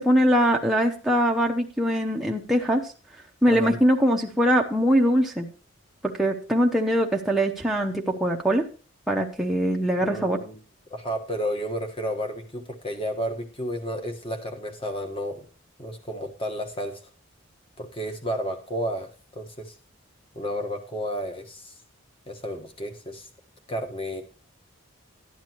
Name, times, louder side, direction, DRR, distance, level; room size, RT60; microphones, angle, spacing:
voice 1, 0.0-2.9 3.4-5.5 6.2-8.6 9.1-10.4, equal, ahead, -1 dB, 0.8 m, -22 dB
voice 2, 3.5-3.8 10.0-10.6 10.9-15.5 15.8-17.1 17.8-19.7 20.3-21.7 22.3-23.3 23.7-24.2, equal, 25° left, 4 dB, 1.4 m, -32 dB
12.5 x 10.0 x 3.0 m, 0.38 s
head